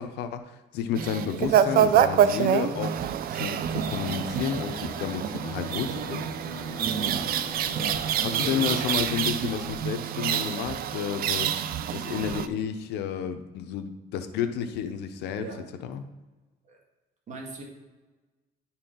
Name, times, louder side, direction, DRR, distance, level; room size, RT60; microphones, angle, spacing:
voice 1, 0.0-3.0 3.3-6.2 8.2-11.6 11.9-15.5 15.8-16.0, left 8 dB, 80° left, 9 dB, 0.7 m, -31 dB
sound 1, 1.0-12.5, right 9 dB, 60° right, 0.5 m, -26 dB
Aircraft, 3.7-9.7, left 3 dB, 20° left, 0.9 m, -43 dB
voice 2, 6.8-7.2 7.7-8.6 15.4-15.6 16.6-16.8 17.3-17.6, right 3 dB, 45° right, 0 dB, 1.9 m, -37 dB
10.5 x 4.4 x 3.8 m, 1.2 s
cardioid pair, 110°, 17 cm